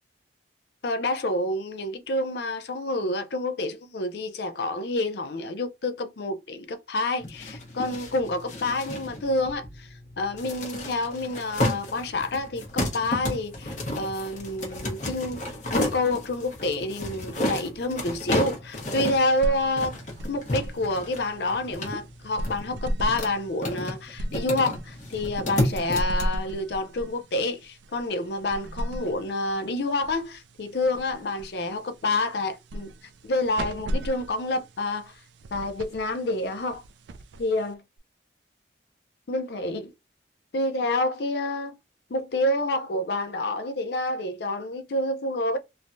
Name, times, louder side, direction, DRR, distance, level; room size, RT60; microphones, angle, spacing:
voice 1, 0.8-9.9 10.2-15.4 15.7-20.0 20.3-32.9 33.2-35.1 35.5-36.8 37.4-37.8 39.3-39.9 40.5-41.8 42.1-45.6, left 2 dB, 65° left, 0.5 m, -28 dB
sound 1, 7.2-26.2, left 1 dB, 40° left, 0.8 m, -32 dB
sound 2, 19.1-38.0, equal, 75° right, 0.3 m, -37 dB
3.1 x 2.2 x 2.6 m
head